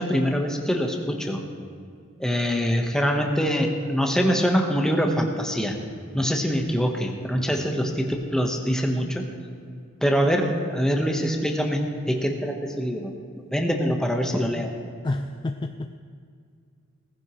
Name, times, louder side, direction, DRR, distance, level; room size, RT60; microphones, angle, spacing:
voice 1, 0.0-1.4 2.2-5.8 6.1-9.3 10.0-13.1 13.5-14.7, equal, 5° left, 2 dB, 1.2 m, -24 dB
voice 2, 15.0-16.0, left 2 dB, 20° left, 7 dB, 0.4 m, -29 dB
18.5 x 15.0 x 3.2 m, 2.3 s
head